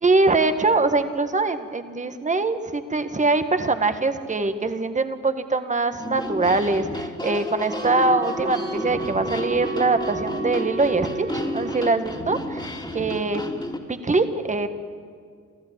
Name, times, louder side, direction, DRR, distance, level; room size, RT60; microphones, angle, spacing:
voice 1, 0.0-12.4 12.9-13.4 13.9-14.7, right 3 dB, 25° right, 9 dB, 1.7 m, -23 dB
sound 1, 6.0-13.8, left 1 dB, 15° left, 3.0 m, -32 dB
Wind instrument woodwind instrument, 7.5-11.8, right 3 dB, 50° right, 4.7 m, -33 dB
28.5 x 14.5 x 8.8 m, 2.1 s
cardioid pair, 90°, 30 cm